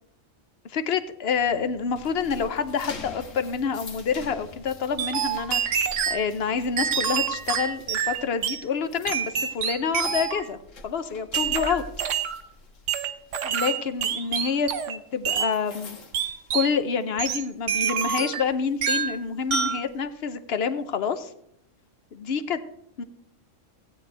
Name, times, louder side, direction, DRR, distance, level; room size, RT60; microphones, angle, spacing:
voice 1, 0.7-10.6 10.8-12.1 13.4-16.0 16.5-21.3 22.1-22.6 23.0-23.1, left 6 dB, 60° left, 10 dB, 0.9 m, -28 dB
sound 1, 1.3-17.2 17.6-17.9 18.3-20.0, left 3 dB, 80° left, 1.6 m, -46 dB
sound 2, 5.0-6.2 6.8-8.6 9.1-10.5 11.3-12.4 12.9-15.0 15.2-15.5 16.1-16.7 17.2-18.5 18.8-19.2 19.5-19.8, right 8 dB, 75° right, 1.1 m, -27 dB
16.0 x 9.0 x 3.3 m, 0.75 s
omnidirectional pair, 1.3 m